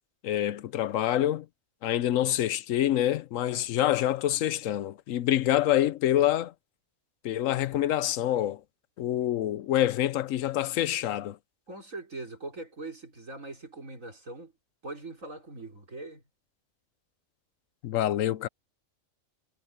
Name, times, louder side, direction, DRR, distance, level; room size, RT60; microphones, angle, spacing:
voice 1, 0.2-1.5 1.8-6.5 7.2-8.6 9.0-11.4 17.8-18.5, left 12 dB, 80° left, 1.0 m, -26 dB
voice 2, 11.7-14.5 14.8-16.2, right 2 dB, 75° right, 5.1 m, -41 dB
omnidirectional pair, 1.4 m